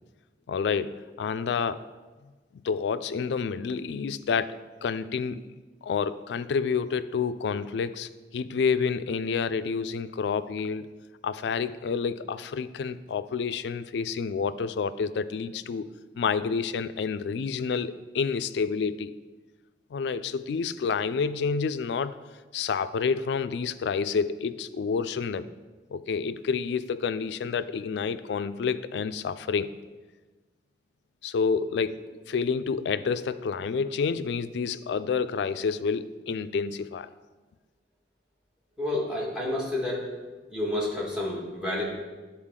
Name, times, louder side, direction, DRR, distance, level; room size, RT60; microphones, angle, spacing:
voice 1, 0.5-1.8 2.6-5.5 5.8-10.9 11.2-15.9 16.2-19.1 19.9-22.2 22.5-25.5 25.9-29.7 31.2-37.1, left 5 dB, 75° left, 13 dB, 0.3 m, -29 dB
voice 2, 38.8-40.1 40.5-42.0, left 1 dB, 5° right, -5 dB, 1.7 m, -30 dB
10.5 x 4.4 x 3.7 m, 1.3 s
head